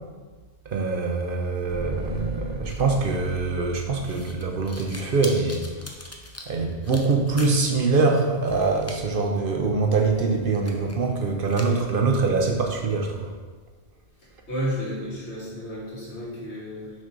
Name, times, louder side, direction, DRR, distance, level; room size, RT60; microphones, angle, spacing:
voice 1, 0.7-5.7 6.5-13.3, right 4 dB, 55° right, 3 dB, 0.9 m, -24 dB
sound 1, 1.6-6.2 6.5-6.6, equal, 10° right, 1.2 m, -38 dB
sound 2, 2.6-7.9 8.1-9.0 9.4-9.5 9.9-10.0 10.5-11.1 11.4-11.9, left 1 dB, 20° left, 0.5 m, -42 dB
voice 2, 14.5-16.9, equal, 80° left, -7 dB, 2.6 m, -32 dB
6.5 x 4.2 x 5.2 m, 1.4 s
omnidirectional pair, 1.2 m